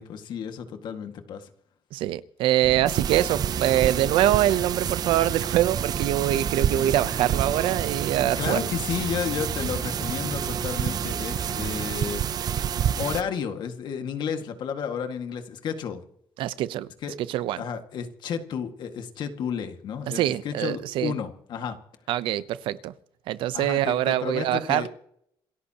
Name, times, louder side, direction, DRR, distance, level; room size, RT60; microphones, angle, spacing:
voice 1, 0.0-1.5 8.4-12.3 13.0-16.0 17.0-17.1 17.6-21.8 23.5-24.9, left 7 dB, 60° left, 2.0 m, -32 dB
voice 2, 1.9-8.7 16.4-16.9 17.3-17.6 20.1-21.1 22.1-22.9 23.3-24.9, right 13 dB, 85° right, 0.8 m, -24 dB
sound 1, 2.6-11.9, right 3 dB, 25° right, 1.8 m, -37 dB
sound 2, 2.9-13.2, right 9 dB, 50° right, 0.6 m, -29 dB
27.5 x 14.0 x 3.0 m
cardioid pair, 130°, 8 cm